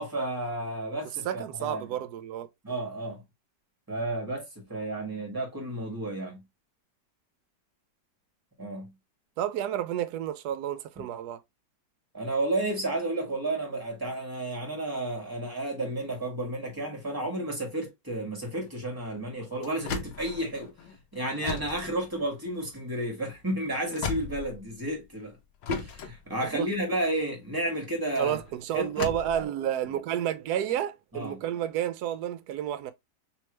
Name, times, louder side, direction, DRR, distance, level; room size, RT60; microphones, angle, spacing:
voice 1, 0.0-1.9 2.6-3.2 3.9-6.4 8.6-8.9 11.0-11.1 12.1-20.7 21.1-25.4 25.7-28.4 28.7-29.1 31.1-31.4, right 1 dB, 10° right, 1.5 m, -32 dB
voice 2, 1.2-2.5 9.4-11.4 26.5-26.7 28.2-32.9, right 10 dB, 70° right, 1.0 m, -30 dB
sound 1, 18.4-25.1 25.6-29.5, left 5 dB, 85° left, 1.4 m, -38 dB
3.4 x 3.1 x 3.0 m
omnidirectional pair, 2.0 m